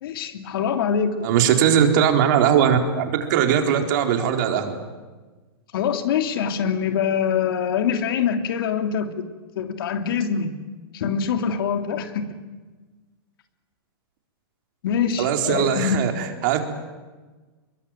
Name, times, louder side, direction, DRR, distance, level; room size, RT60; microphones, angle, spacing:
voice 1, 0.0-1.3 5.7-9.3 9.5-10.5 10.9-12.4 14.8-16.0, left 7 dB, 65° left, 7 dB, 3.1 m, -24 dB
voice 2, 1.2-4.7 15.2-16.6, right 8 dB, 50° right, 5 dB, 4.1 m, -20 dB
24.5 x 22.5 x 9.2 m, 1.3 s
hypercardioid pair, 145°, 13 cm